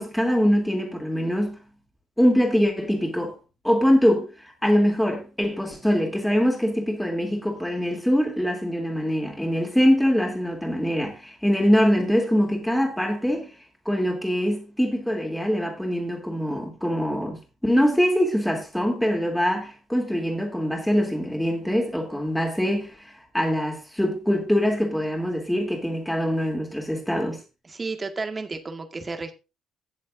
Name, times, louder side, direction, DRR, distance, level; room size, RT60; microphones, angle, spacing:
voice 1, 0.0-1.6 2.2-3.4 3.6-13.5 13.8-27.4, equal, 5° left, 3.1 m, -23 dB
voice 2, 27.7-29.3, right 3 dB, 30° right, 1.8 m, -32 dB
18.0 x 7.4 x 2.6 m
figure-of-eight pair, 45°, 0 cm